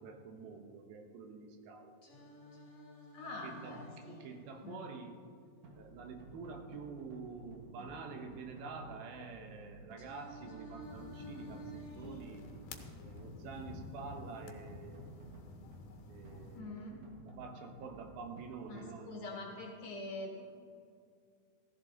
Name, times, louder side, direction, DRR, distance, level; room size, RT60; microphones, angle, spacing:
voice 1, 0.0-1.9 3.4-5.2 5.8-12.5 13.0-15.1 16.1-16.8 17.3-19.4, right 4 dB, 75° right, 4 dB, 2.9 m, -48 dB
Singing, 2.0-6.0 10.0-14.0, right 1 dB, 25° left, 2.8 m, -53 dB
voice 2, 3.1-4.3 4.6-4.9 16.5-17.0 18.7-20.4, left 2 dB, 55° left, 0 dB, 2.4 m, -45 dB
sound 1, 5.6-18.4, right 3 dB, 50° right, 2.3 m, -55 dB
sound 2, 10.8-16.6, left 4 dB, 75° left, 2.7 m, -51 dB
16.5 x 14.5 x 3.9 m, 2.3 s
omnidirectional pair, 4.4 m